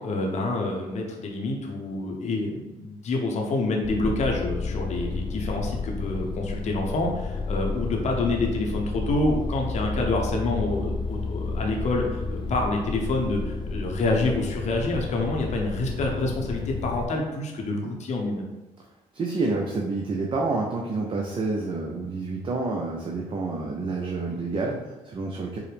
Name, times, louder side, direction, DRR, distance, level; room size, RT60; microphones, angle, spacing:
voice 1, 0.0-18.5, left 2 dB, 50° left, 0 dB, 0.7 m, -27 dB
sound 1, 3.8-17.1, left 3 dB, 30° left, 0.4 m, -31 dB
voice 2, 19.1-25.6, right 3 dB, 35° right, 0 dB, 0.5 m, -28 dB
4.6 x 2.0 x 3.3 m, 1.1 s
supercardioid pair, 75°, 15 cm